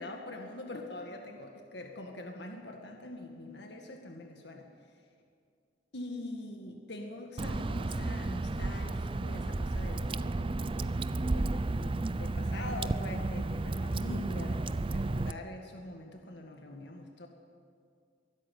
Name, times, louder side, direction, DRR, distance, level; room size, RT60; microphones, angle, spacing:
voice 1, 0.0-4.7 5.9-17.3, left 1 dB, 65° left, 3 dB, 1.9 m, -44 dB
Water / Drip, 7.4-15.3, right 2 dB, 30° right, 0.5 m, -32 dB
23.0 x 13.0 x 9.3 m, 2.3 s
head